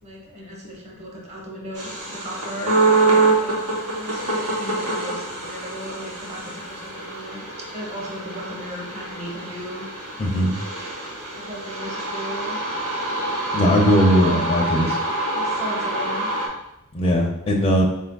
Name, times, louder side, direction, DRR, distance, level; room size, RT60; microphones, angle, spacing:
voice 1, 0.0-2.8 3.4-3.6 3.9-6.4 6.7-9.9 10.1-10.3 11.4-12.6 13.9-14.5 15.3-16.3, equal, 30° right, -3 dB, 0.8 m, -36 dB
sound 1, 1.8-16.5, right 2 dB, 80° right, 0.9 m, -25 dB
voice 2, 10.2-10.6 13.5-15.0 16.9-17.8, equal, 25° left, 0 dB, 0.4 m, -19 dB
4.2 x 3.4 x 2.3 m, 0.85 s
head